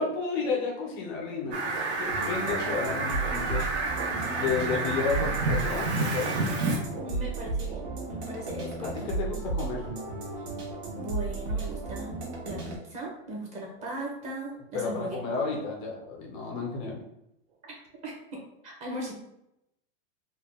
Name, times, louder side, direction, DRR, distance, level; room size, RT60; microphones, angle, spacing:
voice 1, 0.0-3.7 4.3-6.3 8.8-9.9 14.7-17.0, left 4 dB, 15° left, -1 dB, 0.3 m, -32 dB
sound 1, 1.4-14.2 14.5-14.8 15.3-15.6 16.0-16.2 16.7-16.8 17.5-17.6, right 5 dB, 60° right, 0.7 m, -46 dB
Fowl, 1.5-6.8, right 3 dB, 80° right, 1.1 m, -30 dB
sound 2, 2.0-12.8, right 3 dB, 45° right, 1.1 m, -34 dB
voice 2, 7.0-9.1 11.0-12.1 12.4-15.2 17.6-17.7 18.0-19.2, right 1 dB, 20° right, -2 dB, 0.7 m, -38 dB
3.7 x 2.2 x 3.4 m, 0.81 s
supercardioid pair, 165°, 33 cm